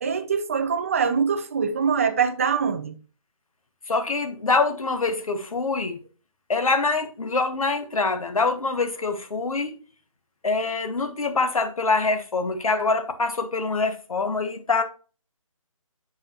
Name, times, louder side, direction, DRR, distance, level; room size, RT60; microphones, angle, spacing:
voice 1, 0.0-3.0, right 6 dB, 25° right, 0.4 m, -23 dB
voice 2, 3.9-6.0 6.5-9.8 10.4-14.8, left 3 dB, 80° left, 1.2 m, -25 dB
7.5 x 4.8 x 2.8 m
hypercardioid pair, 160°, 18 cm